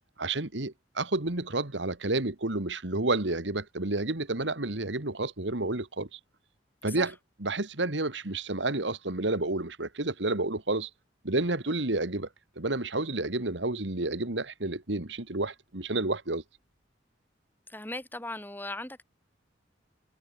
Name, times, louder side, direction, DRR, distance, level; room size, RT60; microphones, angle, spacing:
voice 1, 0.2-6.2 6.8-10.9 11.2-12.3 12.6-16.4, right 2 dB, 80° right, 2.2 m, -30 dB
voice 2, 17.7-19.0, left 1 dB, 10° left, 5.6 m, -38 dB
head